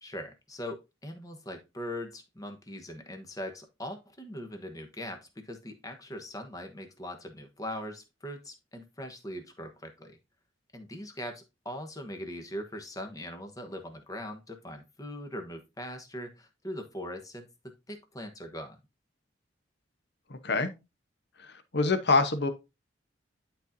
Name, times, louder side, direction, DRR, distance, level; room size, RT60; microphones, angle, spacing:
voice 1, 0.0-10.2 10.7-18.8, left 1 dB, 20° left, 1.1 m, -41 dB
voice 2, 20.3-20.7 21.4-22.5, left 3 dB, 65° left, 0.9 m, -26 dB
11.0 x 4.3 x 2.6 m
head